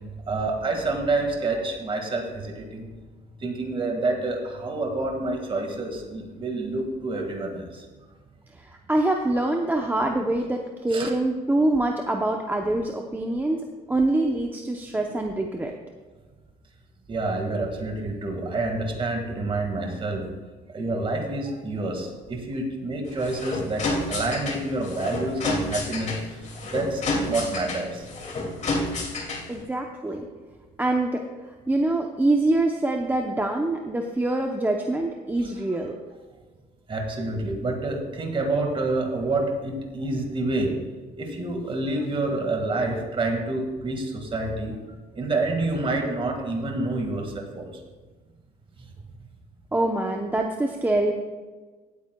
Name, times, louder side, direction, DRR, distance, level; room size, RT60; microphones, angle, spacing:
voice 1, 0.3-2.8 3.4-7.8 10.9-11.1 17.1-20.3 20.7-26.2 26.6-28.0 36.9-40.8 41.2-44.7 45.1-47.7, right 2 dB, 30° right, 2 dB, 1.8 m, -28 dB
voice 2, 8.6-15.8 29.5-30.3 30.8-31.2 31.5-35.9 49.7-51.1, right 2 dB, 10° right, 2 dB, 0.7 m, -25 dB
sound 1, 23.1-29.6, left 2 dB, 45° left, 2.4 m, -30 dB
16.5 x 9.1 x 2.3 m, 1.3 s
cardioid pair, 110°, 17 cm